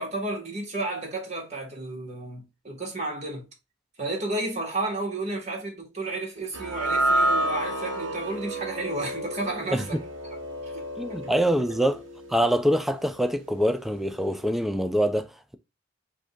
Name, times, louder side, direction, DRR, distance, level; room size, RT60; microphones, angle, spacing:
voice 1, 0.0-3.4 4.0-10.0 10.6-10.7 11.1-11.2, right 2 dB, 35° right, 1.9 m, -32 dB
sound 1, 6.5-12.9, right 1 dB, 80° right, 1.1 m, -29 dB
voice 2, 11.0-12.0 12.3-15.6, equal, ahead, 0.4 m, -25 dB
5.3 x 2.7 x 3.6 m
head